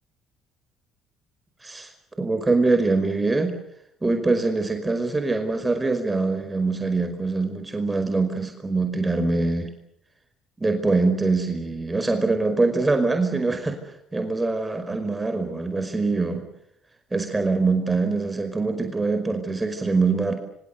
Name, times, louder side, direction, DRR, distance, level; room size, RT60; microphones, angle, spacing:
voice 1, 2.2-3.5 4.0-9.7 10.6-13.8 14.1-16.5 17.1-20.3, right 3 dB, 20° right, 7 dB, 5.2 m, -23 dB
26.5 x 25.5 x 6.9 m, 0.76 s
supercardioid pair, 65°, 0 cm